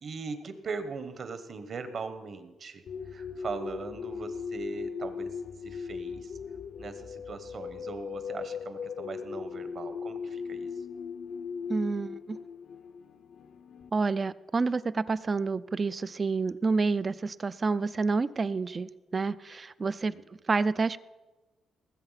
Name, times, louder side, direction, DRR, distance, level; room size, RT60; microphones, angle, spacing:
voice 1, 0.0-6.4 6.8-10.8 20.0-20.2, right 4 dB, 45° right, 11 dB, 1.2 m, -40 dB
sound 1, 2.9-13.9, left 6 dB, 55° left, 0.6 m, -38 dB
voice 2, 11.7-12.4 13.9-20.1 20.5-21.0, right 4 dB, 25° right, 17 dB, 0.4 m, -29 dB
18.5 x 7.9 x 5.8 m, 1.2 s
cardioid pair, 135°, 0 cm